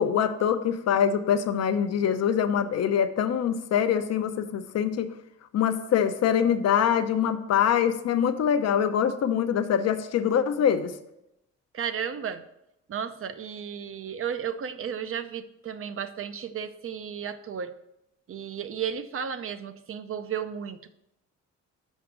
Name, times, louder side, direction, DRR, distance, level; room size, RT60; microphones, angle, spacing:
voice 1, 0.0-5.1 5.5-10.9, left 8 dB, 60° left, 10 dB, 0.7 m, -24 dB
voice 2, 11.7-12.4 12.9-17.7 18.3-20.9, right 7 dB, 45° right, 11 dB, 0.6 m, -33 dB
6.3 x 5.1 x 6.0 m, 0.86 s
cardioid pair, 90°, 30 cm